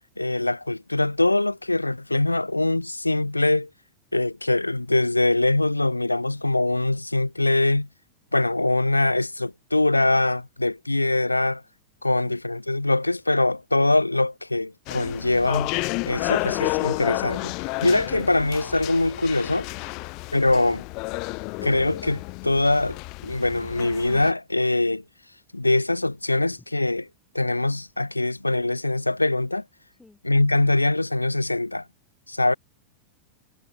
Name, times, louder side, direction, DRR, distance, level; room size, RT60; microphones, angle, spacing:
voice 1, 0.2-3.7 4.1-7.9 8.3-11.6 12.0-15.7 16.1-17.5 17.8-19.7 20.3-20.8 21.6-25.0 25.5-27.1 27.3-29.6 30.2-31.8 32.3-32.5, left 2 dB, 85° left, 1.0 m, -23 dB
sound 1, 14.9-24.3, left 28 dB, 45° left, 0.4 m, -31 dB
voice 2, 29.9-30.2, left 3 dB, 10° left, 7.3 m, -55 dB
figure-of-eight pair, 90°, 0 cm